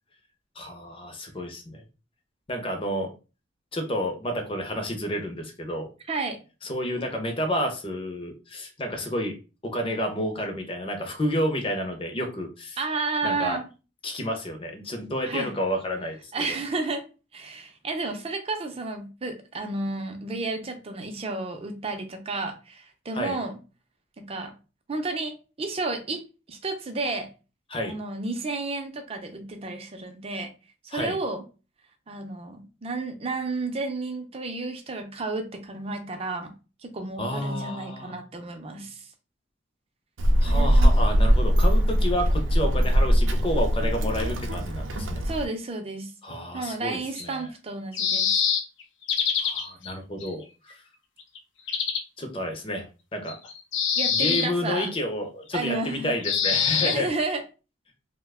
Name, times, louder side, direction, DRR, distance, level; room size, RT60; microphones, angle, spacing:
voice 1, 0.6-1.8 2.5-3.1 3.7-5.9 6.6-9.3 9.6-12.8 13.2-13.6 14.0-16.5 23.1-23.4 27.7-27.9 30.9-31.2 37.2-38.2 40.4-45.2 46.2-47.5 49.4-50.7 52.2-53.4 54.1-57.1, equal, 30° left, 0.6 m, -30 dB
voice 2, 6.1-6.4 12.8-13.7 15.2-15.5 16.3-17.1 17.3-23.5 24.2-24.5 24.9-27.3 27.8-30.5 30.8-31.4 32.1-36.5 36.8-39.0 45.2-46.1 46.5-48.3 54.0-54.9 55.5-56.2 56.8-57.4, right 3 dB, 30° right, 0.5 m, -32 dB
Child speech kid speaking, 40.2-45.5, equal, 85° right, 0.5 m, -21 dB
sound 1, 46.7-46.8 47.2-47.3 47.9-49.9 50.2-50.3 50.7-50.8 51.2-51.4 51.7-52.0 53.3-54.5 56.2-57.0, left 7 dB, 75° left, 0.5 m, -25 dB
2.8 x 2.2 x 3.4 m
head